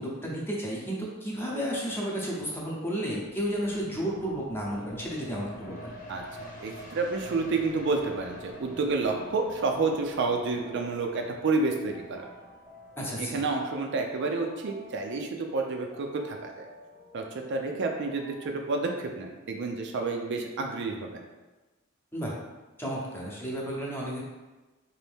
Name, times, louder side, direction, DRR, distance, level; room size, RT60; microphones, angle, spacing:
voice 1, 0.0-5.9 13.0-13.5 22.1-22.3 22.8-24.2, equal, 10° left, -4 dB, 0.8 m, -32 dB
sound 1, 3.3-16.5 16.9-17.0, left 1 dB, 45° left, 0.9 m, -48 dB
voice 2, 6.1-12.3 13.2-16.7 17.1-17.2 17.5-21.2, right 3 dB, 55° right, 3 dB, 0.4 m, -30 dB
sound 2, 8.9-18.5, equal, 5° right, 1.1 m, -52 dB
4.1 x 2.6 x 3.4 m, 1.2 s
head